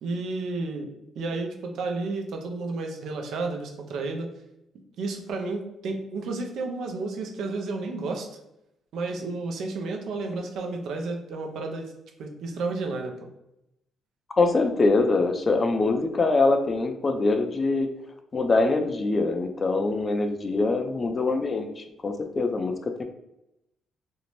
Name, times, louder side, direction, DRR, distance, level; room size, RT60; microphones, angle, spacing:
voice 1, 0.0-0.9 1.2-4.3 5.0-8.3 8.9-11.9 12.2-13.3, right 3 dB, 75° right, 3 dB, 0.5 m, -31 dB
voice 2, 14.3-17.9 18.3-22.7, left 3 dB, 35° left, 6 dB, 0.4 m, -23 dB
2.6 x 2.0 x 3.0 m, 0.86 s
cardioid pair, 90°, 0 cm